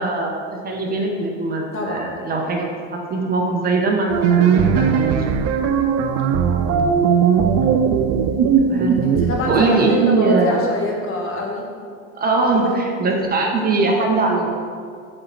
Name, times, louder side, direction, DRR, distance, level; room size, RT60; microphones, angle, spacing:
voice 1, 0.0-5.2 6.6-7.0 8.3-9.1 9.5-10.6 12.1-14.5, right 3 dB, 25° right, 0 dB, 1.1 m, -21 dB
voice 2, 1.7-2.1 6.2-6.4 9.0-11.7 12.5-12.8, left 1 dB, 35° left, -1 dB, 1.5 m, -25 dB
sound 1, 4.1-9.7, right 7 dB, 45° right, 0.5 m, -18 dB
7.6 x 4.5 x 4.2 m, 2.2 s
supercardioid pair, 125°, 36 cm